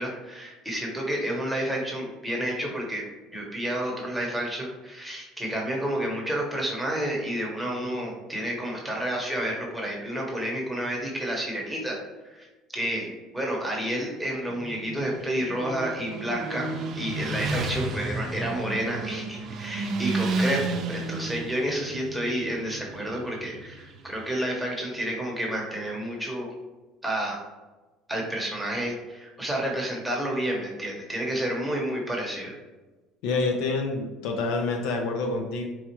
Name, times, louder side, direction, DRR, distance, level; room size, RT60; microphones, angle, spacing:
voice 1, 0.0-3.0 3.3-12.0 12.3-12.5 12.7-16.7 16.9-26.5 27.0-27.4 28.1-32.5, right 1 dB, 5° right, -3 dB, 0.9 m, -30 dB
Motorcycle, 14.5-24.3, right 3 dB, 50° right, 0.5 m, -32 dB
voice 2, 33.2-35.7, left 3 dB, 75° left, 3 dB, 0.5 m, -27 dB
4.2 x 2.3 x 2.9 m, 1.2 s
supercardioid pair, 105°, 0 cm